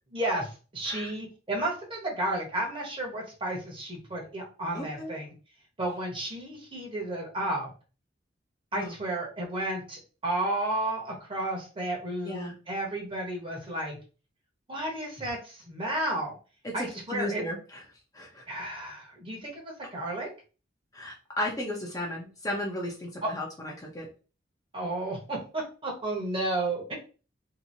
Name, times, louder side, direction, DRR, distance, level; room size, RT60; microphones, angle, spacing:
voice 1, 0.1-5.3 5.8-7.7 8.7-14.0 14.7-16.4 16.7-17.4 18.5-20.3 23.2-23.3 24.7-26.9, right 1 dB, 30° right, -1 dB, 0.9 m, -32 dB
voice 2, 4.7-5.2 8.7-8.9 12.3-12.5 16.8-17.8 18.1-18.4 20.9-24.1, left 1 dB, 20° left, -2 dB, 0.6 m, -35 dB
2.8 x 2.6 x 2.6 m, 0.35 s
head